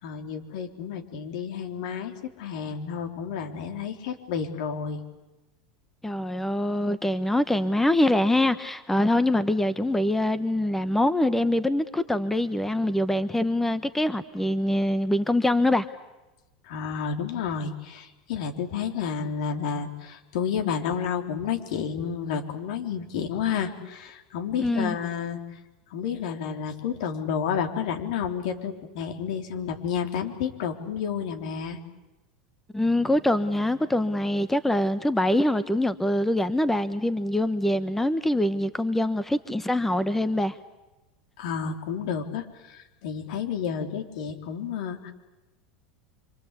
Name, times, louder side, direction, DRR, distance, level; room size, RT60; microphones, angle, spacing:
voice 1, 0.0-5.0 16.7-25.6 25.9-31.8 41.4-45.1, left 7 dB, 70° left, 3.9 m, -31 dB
voice 2, 6.0-15.9 24.6-25.0 32.7-40.6, left 1 dB, 5° left, 1.2 m, -24 dB
26.0 x 26.0 x 8.4 m
hypercardioid pair, 100°, 4 cm